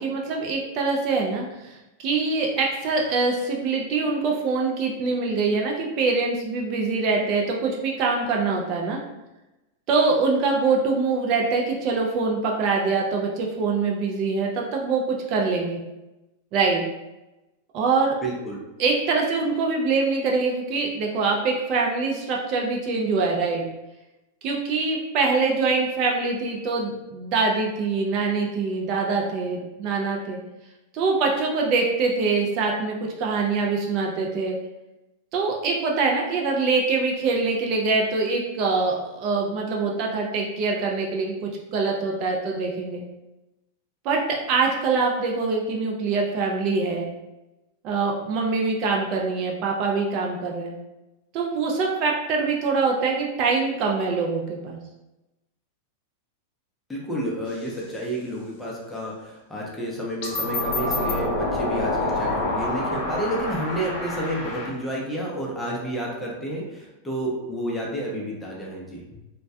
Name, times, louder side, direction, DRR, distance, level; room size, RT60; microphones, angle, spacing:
voice 1, 0.0-9.0 9.9-15.8 16.5-16.8 17.7-18.2 18.8-23.6 24.4-30.4 30.9-34.6 35.3-43.0 44.0-47.1 47.8-50.7 51.3-54.8, right 4 dB, 45° right, -1 dB, 0.4 m, -24 dB
voice 2, 18.2-18.6 56.9-69.0, right 1 dB, 5° left, -4 dB, 0.6 m, -30 dB
sound 1, 57.5-57.8 60.2-64.7, left 2 dB, 55° left, 0.8 m, -27 dB
2.2 x 2.1 x 2.6 m, 1.0 s
supercardioid pair, 135°, 0 cm